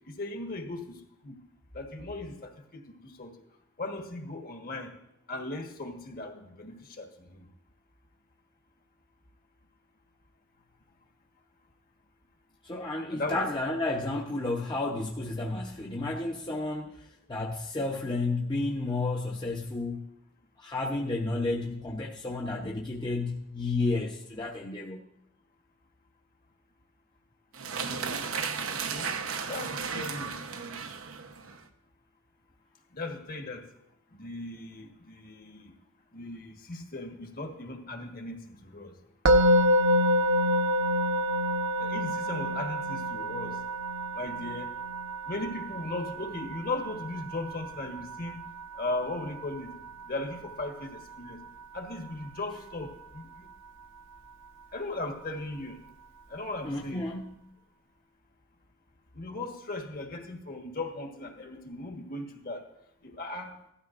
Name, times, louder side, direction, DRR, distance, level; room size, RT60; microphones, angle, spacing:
voice 1, 0.1-0.9 1.2-1.4 1.7-3.3 3.8-4.9 5.3-7.4 13.1-13.5 28.7-29.1 29.5-30.4 32.9-33.7 34.1-35.7 36.1-38.9 41.8-43.6 44.1-44.7 45.3-48.4 48.8-49.7 50.1-51.4 51.7-53.5 54.7-55.8 56.3-57.1 59.1-62.6 63.0-63.5, left 2 dB, 45° left, 3 dB, 1.4 m, -37 dB
voice 2, 12.6-20.0 20.6-25.0 56.6-57.3, left 2 dB, 20° left, -1 dB, 0.8 m, -32 dB
sound 1, 27.5-31.6, right 5 dB, 85° right, 1.0 m, -34 dB
Musical instrument, 39.2-50.4, equal, 65° right, 0.9 m, -28 dB
16.0 x 12.5 x 2.5 m, 0.81 s
head